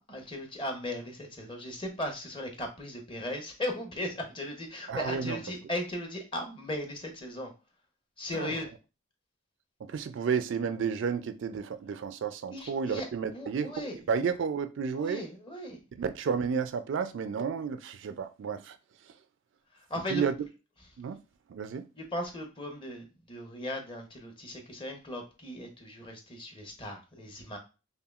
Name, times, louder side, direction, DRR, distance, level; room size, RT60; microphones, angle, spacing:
voice 1, 0.1-7.5 8.2-8.7 12.5-13.1 13.3-14.0 14.9-15.8 19.9-20.2 22.0-27.6, left 1 dB, 25° left, 0.8 m, -37 dB
voice 2, 4.9-5.4 8.3-8.6 9.8-15.2 16.0-18.8 19.1-19.2 20.1-20.3 21.0-21.2 21.5-21.8, right 6 dB, 60° right, 0.3 m, -32 dB
5.5 x 2.3 x 2.4 m
head